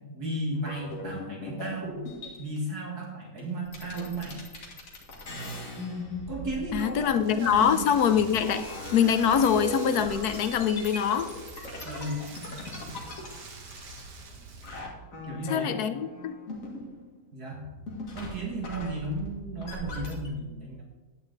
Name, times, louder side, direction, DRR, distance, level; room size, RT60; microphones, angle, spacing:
voice 1, 0.1-2.0 2.4-4.4 6.3-7.9 11.8-12.2 15.2-15.8 17.3-17.6 18.1-20.8, right 1 dB, 65° right, -1 dB, 2.3 m, -34 dB
sound 1, 0.6-2.6 3.4-3.5 3.7-14.3 14.6-17.2 17.5-20.3, left 1 dB, 50° left, 2.3 m, -39 dB
voice 2, 6.7-8.7 8.9-11.3 15.5-16.4, left 8 dB, 75° left, 11 dB, 1.2 m, -24 dB
Rain, 7.0-14.8, right 3 dB, 85° right, 1.9 m, -45 dB
11.5 x 9.1 x 3.9 m, 1.3 s
omnidirectional pair, 1.8 m